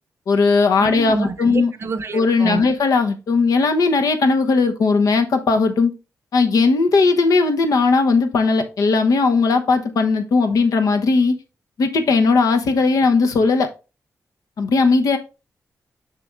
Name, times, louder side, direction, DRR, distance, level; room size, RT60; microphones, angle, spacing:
voice 1, 0.3-1.7 2.1-5.9 6.3-11.3 11.8-13.7 14.6-15.2, left 4 dB, 80° left, 1.0 m, -17 dB
voice 2, 0.8-2.7, right 3 dB, 45° right, 0.6 m, -27 dB
6.8 x 5.9 x 2.5 m
wide cardioid pair, 135°, 6 cm